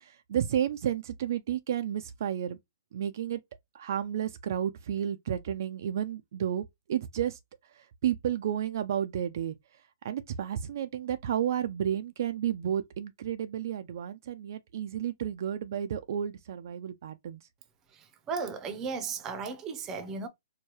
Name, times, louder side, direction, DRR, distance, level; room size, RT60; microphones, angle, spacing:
voice 1, 0.0-2.6 2.9-3.4 3.7-7.4 7.7-9.6 10.0-17.4, right 9 dB, 55° right, 0.4 m, -32 dB
voice 2, 17.9-20.3, right 5 dB, 20° right, 0.6 m, -35 dB
4.5 x 2.2 x 3.0 m
hypercardioid pair, 155°, 2 cm